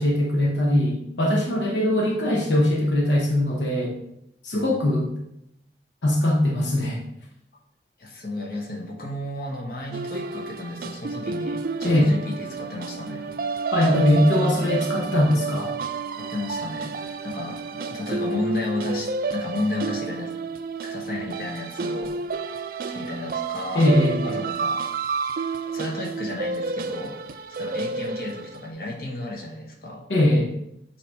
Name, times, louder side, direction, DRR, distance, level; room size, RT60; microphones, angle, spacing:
voice 1, 0.0-4.0 4.4-5.1 6.0-7.0 11.8-12.1 13.7-15.8 23.7-24.4 30.1-30.5, left 1 dB, 85° left, -1 dB, 1.0 m, -21 dB
voice 2, 4.5-5.0 8.0-13.3 16.3-20.3 20.8-22.1 22.9-23.8 24.2-24.8 25.6-27.2 27.6-30.0, left 1 dB, 55° left, -1 dB, 1.3 m, -32 dB
sound 1, 9.9-28.7, right 4 dB, 55° right, 0.4 m, -30 dB
7.5 x 2.9 x 4.8 m, 0.82 s
head